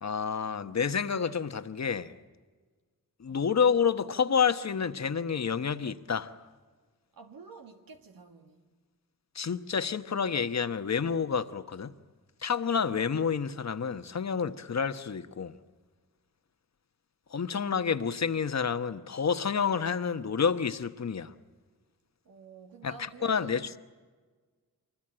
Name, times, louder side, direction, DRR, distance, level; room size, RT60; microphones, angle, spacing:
voice 1, 0.0-2.1 3.2-6.3 9.3-11.9 12.4-15.5 17.3-21.3 22.8-22.9 23.2-23.8, left 6 dB, 50° left, 1.2 m, -29 dB
voice 2, 7.1-8.7 22.3-23.7, right 4 dB, 80° right, 1.9 m, -49 dB
24.5 x 20.5 x 8.9 m
cardioid pair, 55°, 35 cm